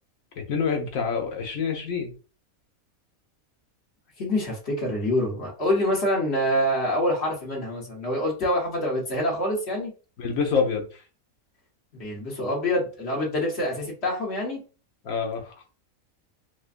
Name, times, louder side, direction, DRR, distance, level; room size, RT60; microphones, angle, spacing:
voice 1, 0.5-2.1 10.2-11.0 15.0-15.5, left 5 dB, 80° left, 3 dB, 1.3 m, -26 dB
voice 2, 4.2-9.9 11.9-14.6, left 1 dB, 50° left, -2 dB, 1.6 m, -26 dB
4.8 x 2.2 x 2.5 m, 0.34 s
omnidirectional pair, 1.4 m